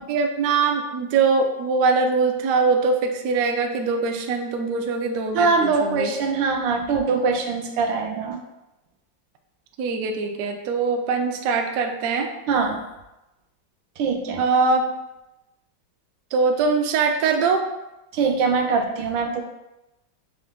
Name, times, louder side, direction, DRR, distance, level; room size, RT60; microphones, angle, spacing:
voice 1, 0.1-6.1 9.8-12.3 14.4-14.8 16.3-17.6, right 4 dB, 70° right, 4 dB, 0.8 m, -22 dB
voice 2, 5.3-8.4 12.5-12.8 14.0-14.4 18.1-19.4, right 4 dB, 90° right, 2 dB, 1.3 m, -22 dB
6.3 x 2.2 x 3.5 m, 0.97 s
omnidirectional pair, 2.0 m